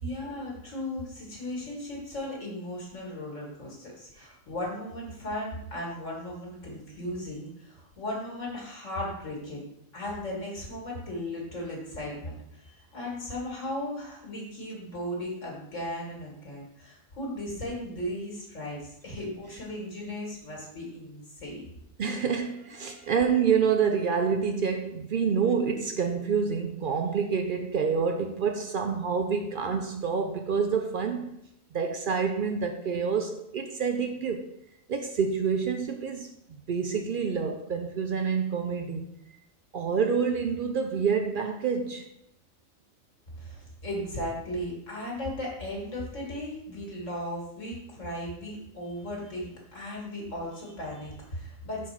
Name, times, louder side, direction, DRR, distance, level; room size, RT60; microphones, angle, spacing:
voice 1, 0.0-9.7 9.9-21.7 43.4-51.9, left 1 dB, 65° left, 2.2 m, -36 dB
voice 2, 22.0-31.4 31.7-34.5 34.9-39.1 39.7-42.1, right 6 dB, 65° right, 0.5 m, -27 dB
4.8 x 4.0 x 5.8 m
omnidirectional pair, 1.4 m